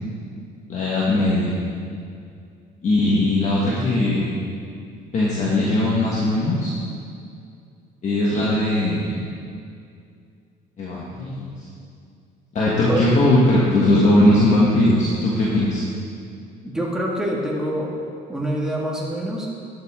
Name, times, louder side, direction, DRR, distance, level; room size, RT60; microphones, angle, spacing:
voice 1, 0.7-1.5 2.8-4.3 5.1-6.7 8.0-9.1 10.8-11.5 12.5-15.8, left 1 dB, 45° left, -6 dB, 1.6 m, -19 dB
voice 2, 12.7-13.1 16.6-17.9 18.3-19.5, right 1 dB, 5° right, -4 dB, 2.0 m, -25 dB
11.5 x 7.9 x 3.7 m, 2.4 s
cardioid pair, 110°, 17 cm